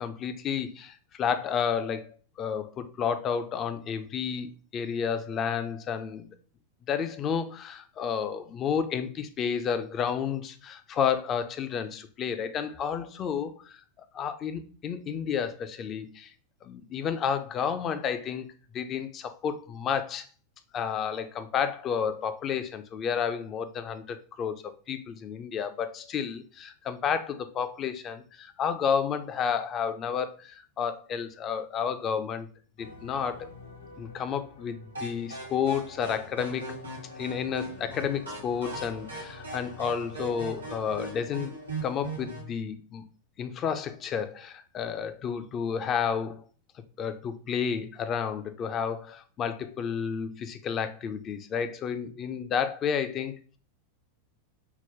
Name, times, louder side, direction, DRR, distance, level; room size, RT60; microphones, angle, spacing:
voice 1, 0.0-6.3 6.9-13.8 14.1-16.3 16.6-18.5 18.7-20.3 20.7-32.5 32.8-33.5 34.0-36.8 37.2-43.0 43.4-46.4 47.0-53.4, left 7 dB, 30° left, 0.3 m, -31 dB
sound 1, 32.8-42.2, left 3 dB, 75° left, 0.6 m, -48 dB
sound 2, 34.9-42.5, right 2 dB, 80° right, 1.1 m, -40 dB
3.7 x 2.1 x 2.8 m
figure-of-eight pair, 90°, 0 cm